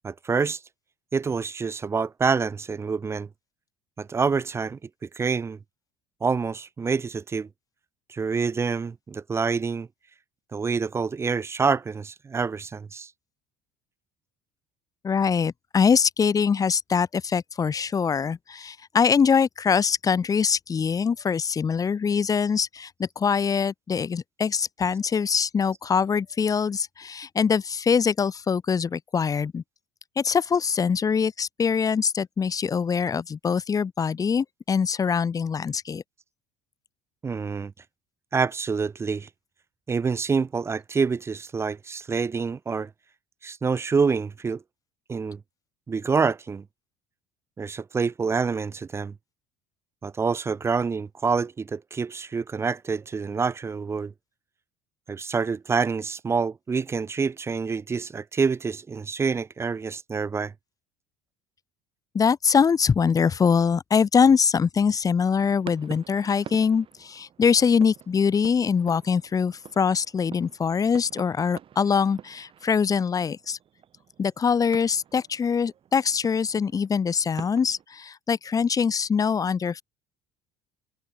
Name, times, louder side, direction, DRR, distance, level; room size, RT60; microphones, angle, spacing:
voice 1, 0.0-0.6 1.1-3.3 4.0-5.6 6.2-7.5 8.1-9.9 10.5-13.1 37.2-37.7 38.3-39.3 39.9-42.9 43.4-44.6 45.1-45.4 45.9-46.6 47.6-49.1 50.0-54.1 55.1-60.5, right 5 dB, 20° right, 0.5 m, -27 dB
voice 2, 15.0-29.6 30.2-36.0 62.1-73.6 74.2-79.8, left 6 dB, 25° left, 1.3 m, -23 dB
sound 1, 65.3-77.8, right 9 dB, 40° right, 3.5 m, -47 dB
cardioid pair, 120°, 13 cm